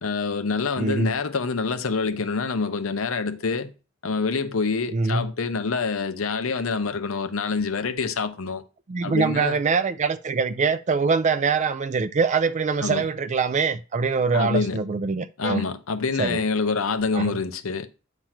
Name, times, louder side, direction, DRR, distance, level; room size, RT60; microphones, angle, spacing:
voice 1, 0.0-3.7 4.0-8.6 9.0-9.6 12.8-13.0 14.3-14.8 15.4-17.9, left 4 dB, 85° left, 0.8 m, -26 dB
voice 2, 0.8-1.1 4.9-5.3 8.9-15.6 16.2-16.4 17.1-17.4, right 4 dB, 35° right, 0.4 m, -23 dB
8.9 x 3.1 x 5.8 m
head